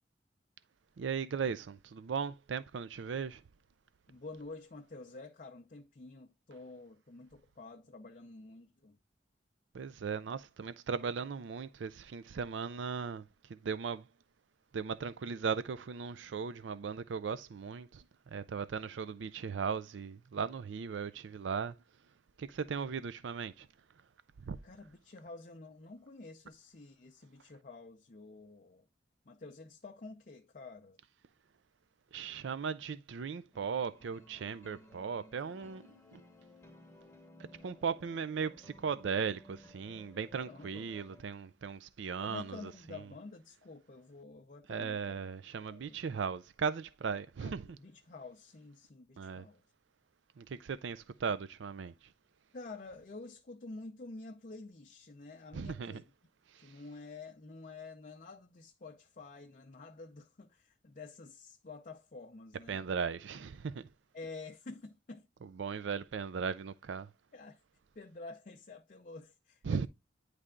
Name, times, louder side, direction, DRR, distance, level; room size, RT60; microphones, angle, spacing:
voice 1, 1.0-3.4 9.7-13.2 13.5-14.1 14.7-18.0 18.3-21.7 22.4-23.7 24.4-24.6 32.1-36.2 37.6-42.6 44.7-47.7 49.2-49.5 50.4-51.9 55.5-55.9 56.5-56.7 62.7-63.9 65.6-67.1 69.6-69.9, right 6 dB, 80° right, 0.4 m, -37 dB
voice 2, 4.1-9.0 24.6-28.9 29.2-31.0 40.4-40.8 42.2-45.2 45.7-46.0 47.4-49.6 52.5-56.0 56.6-62.8 64.1-65.3 67.3-67.6 68.0-69.9, left 3 dB, 45° left, 0.6 m, -49 dB
sound 1, 33.5-41.2, left 1 dB, 15° left, 1.0 m, -58 dB
9.7 x 3.3 x 3.7 m
head